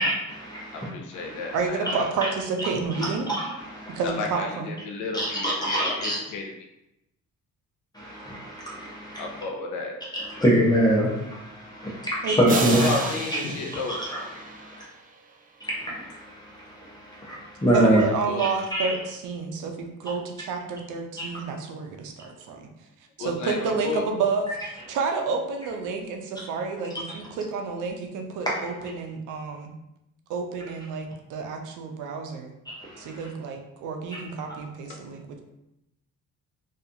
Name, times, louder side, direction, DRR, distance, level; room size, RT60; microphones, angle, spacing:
voice 1, 0.0-1.6 1.9-2.3 2.6-2.7 2.9-4.0 5.1-6.2 7.9-9.4 10.1-13.1 13.9-14.8 15.6-18.0 18.4-18.9 21.2-21.5 26.4-26.5 28.4-28.9 32.7-33.2 34.1-34.2, right 1 dB, 15° left, -6 dB, 0.7 m, -26 dB
voice 2, 0.7-2.1 4.0-6.4 9.2-10.0 12.5-14.0 17.9-18.4 23.2-24.0 34.9-35.0, left 3 dB, 85° left, 2 dB, 0.5 m, -32 dB
voice 3, 1.5-3.3 3.9-4.7 12.2-12.4 12.6-12.9 17.7-22.6 23.2-24.5 24.9-29.7 30.3-32.5 33.0-35.4, right 4 dB, 85° right, 3 dB, 0.5 m, -30 dB
sound 1, 12.5-15.3, right 4 dB, 30° right, 0.3 m, -33 dB
2.4 x 2.3 x 2.7 m, 0.87 s
cardioid pair, 90°, 30 cm